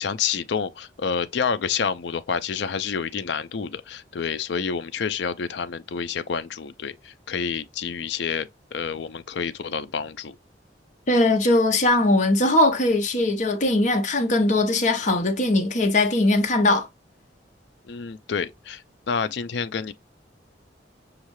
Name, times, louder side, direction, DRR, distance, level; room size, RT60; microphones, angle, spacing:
voice 1, 0.0-10.4 17.9-19.9, left 6 dB, 70° left, 0.4 m, -28 dB
voice 2, 11.1-16.9, left 2 dB, 45° left, 0.8 m, -20 dB
6.3 x 2.4 x 3.0 m
head